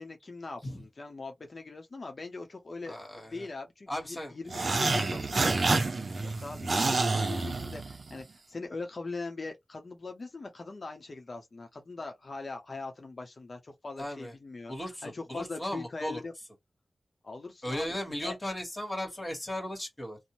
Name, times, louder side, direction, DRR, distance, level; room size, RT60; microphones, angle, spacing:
voice 1, 0.0-5.6 6.2-14.7 15.0-16.3 17.2-18.0 18.2-18.4, left 3 dB, 55° left, 0.7 m, -41 dB
voice 2, 2.9-3.5 3.9-4.4 4.8-5.6 14.0-14.3 14.7-16.2 17.6-20.2, left 1 dB, 25° left, 1.4 m, -37 dB
sound 1, 4.5-8.2, right 3 dB, 60° right, 0.5 m, -28 dB
2.6 x 2.1 x 3.0 m
wide cardioid pair, 70°, 0 cm